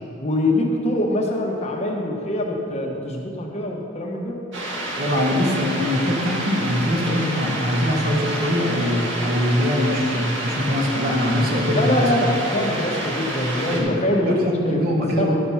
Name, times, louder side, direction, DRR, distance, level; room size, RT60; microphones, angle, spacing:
voice 1, 0.2-4.4 11.7-14.4 14.6-14.8 15.2-15.4, left 1 dB, 30° left, 0 dB, 1.0 m, -24 dB
sound 1, 4.5-13.8, right 1 dB, 65° right, 1.8 m, -29 dB
voice 2, 5.0-12.3 13.7-13.9 14.2-15.5, left 1 dB, 45° right, -1 dB, 1.5 m, -22 dB
12.0 x 5.9 x 5.7 m, 2.8 s
head